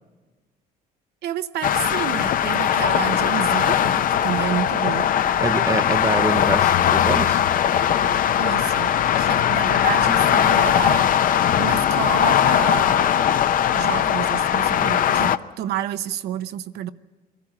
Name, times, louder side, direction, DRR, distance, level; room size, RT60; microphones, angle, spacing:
voice 1, 1.2-5.1 8.4-11.1 11.6-13.2 13.7-16.9, right 10 dB, 75° right, 0.9 m, -29 dB
sound 1, 1.6-15.4, left 9 dB, 55° left, 0.7 m, -19 dB
voice 2, 5.4-7.4, right 3 dB, 20° right, 0.7 m, -26 dB
23.0 x 14.5 x 9.8 m
cardioid pair, 110°, 17 cm